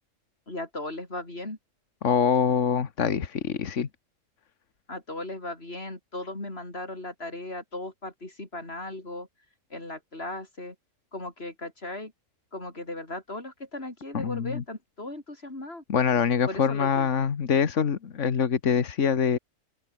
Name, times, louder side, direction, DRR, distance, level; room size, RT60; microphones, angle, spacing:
voice 1, 0.5-1.6 4.9-9.3 9.7-10.8 11.1-12.1 12.5-15.8 16.5-17.1, left 2 dB, 50° left, 5.6 m, -37 dB
voice 2, 2.0-3.9 14.1-14.6 15.9-19.4, left 7 dB, 70° left, 1.7 m, -24 dB
open air
omnidirectional pair, 1.3 m